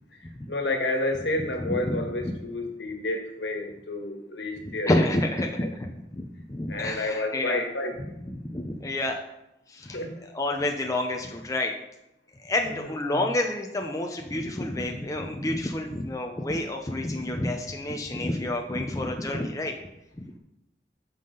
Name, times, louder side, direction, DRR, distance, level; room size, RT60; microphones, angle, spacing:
voice 1, 0.5-4.9 6.7-7.9 9.9-10.2 12.7-12.8 13.1-13.2, left 2 dB, 70° left, 3 dB, 1.6 m, -30 dB
voice 2, 1.6-2.4 4.6-7.6 8.0-9.2 9.7-10.1 10.3-11.8 12.4-19.7, left 1 dB, 20° left, 2 dB, 0.7 m, -29 dB
13.0 x 5.7 x 3.9 m, 0.88 s
head